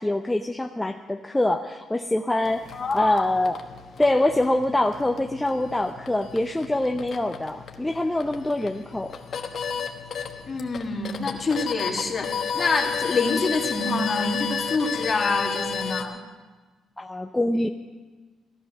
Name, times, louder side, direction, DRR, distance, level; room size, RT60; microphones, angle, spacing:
voice 1, 0.0-3.6 4.0-9.1 17.0-17.7, left 1 dB, 10° left, 5 dB, 0.6 m, -24 dB
sound 1, 2.4-16.0, left 6 dB, 55° left, 1.3 m, -33 dB
voice 2, 2.7-3.2 10.5-16.2, left 3 dB, 35° left, 2 dB, 2.1 m, -26 dB
15.5 x 11.0 x 6.4 m, 1.3 s
cardioid pair, 90°, 0 cm